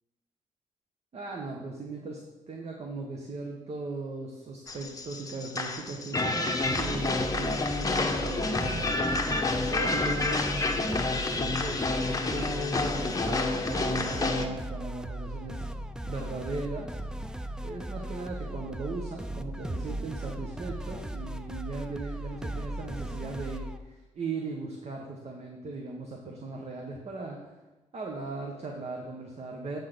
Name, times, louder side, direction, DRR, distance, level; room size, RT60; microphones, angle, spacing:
voice 1, 1.1-10.5 11.3-15.7 16.0-17.0 17.6-27.6 27.9-29.8, right 3 dB, 55° right, 1 dB, 1.1 m, -38 dB
sound 1, 4.7-14.5, left 2 dB, 25° left, 0.9 m, -29 dB
sound 2, 6.6-23.8, right 1 dB, 5° right, 0.4 m, -37 dB
8.3 x 3.9 x 6.5 m, 1.1 s
cardioid pair, 85°, 13 cm